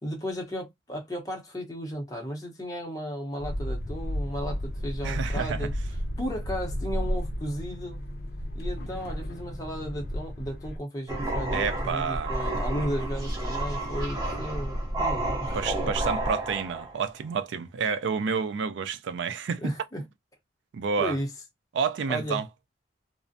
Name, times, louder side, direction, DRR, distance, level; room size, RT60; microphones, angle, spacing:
voice 1, 0.0-5.7 6.2-8.0 8.5-15.6 15.8-15.9 19.6-20.0 21.0-21.3 22.1-22.4, equal, 20° left, 0.7 m, -34 dB
sound 1, 3.4-10.8, equal, 55° left, 0.6 m, -33 dB
voice 2, 5.0-5.7 11.5-12.4 15.5-19.7 20.7-21.2 21.7-22.5, right 5 dB, 70° right, 0.3 m, -29 dB
sound 2, 11.1-17.1, right 1 dB, 20° right, 0.7 m, -30 dB
2.4 x 2.1 x 2.5 m
head